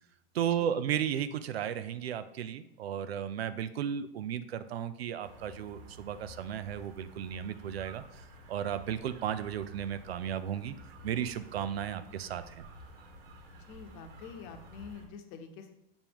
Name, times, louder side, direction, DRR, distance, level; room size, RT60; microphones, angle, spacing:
voice 1, 0.3-10.7 11.0-12.6, right 9 dB, 80° right, 12 dB, 0.6 m, -34 dB
sound 1, 5.2-15.1, equal, 65° right, 1.6 m, -52 dB
voice 2, 13.5-15.7, left 6 dB, 45° left, 6 dB, 1.0 m, -47 dB
7.0 x 5.4 x 3.0 m, 0.82 s
hypercardioid pair, 115°, 30 cm